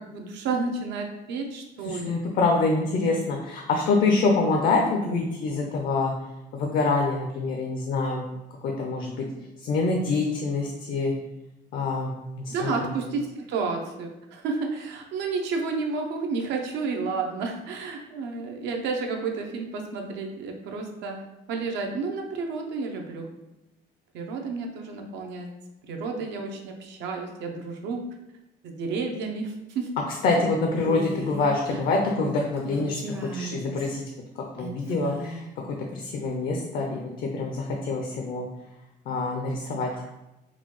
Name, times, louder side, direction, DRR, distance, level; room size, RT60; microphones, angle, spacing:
voice 1, 0.0-2.1 12.5-21.2 21.5-23.3 24.1-25.5 25.9-28.0 28.6-29.9 31.7-31.8, right 4 dB, 80° right, 2 dB, 0.6 m, -31 dB
voice 2, 1.8-6.1 6.5-8.2 8.6-9.3 9.6-11.1 11.7-12.9 30.2-33.0 33.3-34.0 34.6-38.5 39.1-39.9, left 3 dB, 60° left, 1 dB, 0.5 m, -26 dB
Female speech woman speaking, 30.8-31.5 32.6-34.0 34.6-35.5, right 1 dB, 15° right, 0.4 m, -37 dB
3.9 x 2.2 x 3.0 m, 0.95 s
cardioid pair, 130°, 18 cm